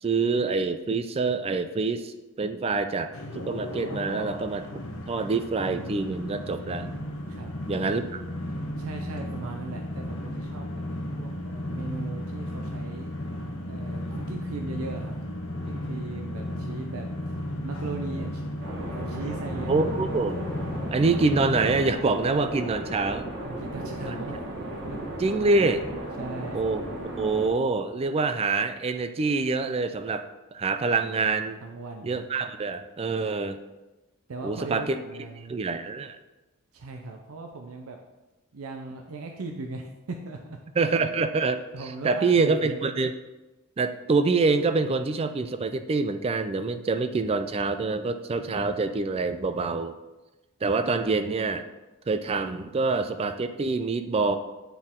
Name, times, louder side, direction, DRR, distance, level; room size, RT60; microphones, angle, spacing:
voice 1, 0.0-3.1 3.4-4.8 5.1-6.9 7.7-8.2 19.7-20.4 20.9-23.3 24.1-24.2 25.2-25.8 26.5-26.8 27.2-30.2 30.5-31.6 32.0-33.6 34.4-35.0 35.5-36.2 40.8-41.6 42.0-43.1 43.8-49.9 50.6-51.6 52.1-54.4, right 3 dB, 25° right, 9 dB, 0.3 m, -26 dB
sound 1, 3.1-21.8, left 1 dB, 70° left, 0.9 m, -34 dB
voice 2, 8.8-10.8 11.2-13.1 13.7-15.2 15.5-18.4 18.9-19.8 23.4-24.5 24.7-25.0 26.2-26.6 31.6-32.2 34.3-35.6 36.7-38.0 38.5-40.6 41.7-42.8, right 3 dB, 80° right, 3 dB, 0.5 m, -38 dB
sound 2, 18.6-27.5, right 1 dB, 55° right, 1.5 m, -36 dB
8.0 x 4.4 x 3.6 m, 1.1 s
head